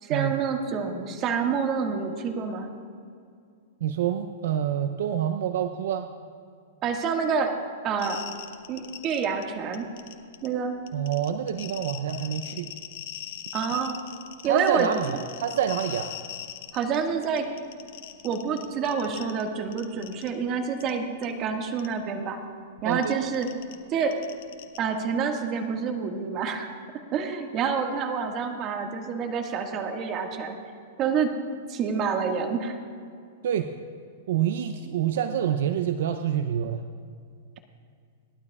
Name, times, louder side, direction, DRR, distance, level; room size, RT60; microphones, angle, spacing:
voice 1, 0.0-2.7 6.8-7.5 7.8-8.2 8.7-9.9 10.4-10.8 13.5-13.9 14.4-15.2 16.7-17.5 18.2-22.4 22.8-23.5 23.9-24.2 24.8-26.7 27.1-30.6 31.0-31.3 31.7-32.8, right 6 dB, 35° right, 3 dB, 1.7 m, -27 dB
voice 2, 3.8-6.1 10.9-12.7 14.4-16.1 22.8-23.1 33.4-33.7 34.3-36.8, right 9 dB, 70° right, 8 dB, 0.6 m, -27 dB
sound 1, 8.0-9.4 9.7-10.5 10.9-17.0 17.2-19.4 19.7-20.3 20.8-20.9 21.2-21.3 21.8-21.9 22.9-24.8, left 12 dB, 60° left, 1.1 m, -40 dB
19.5 x 12.0 x 2.4 m, 2.3 s
hypercardioid pair, 130°, 0 cm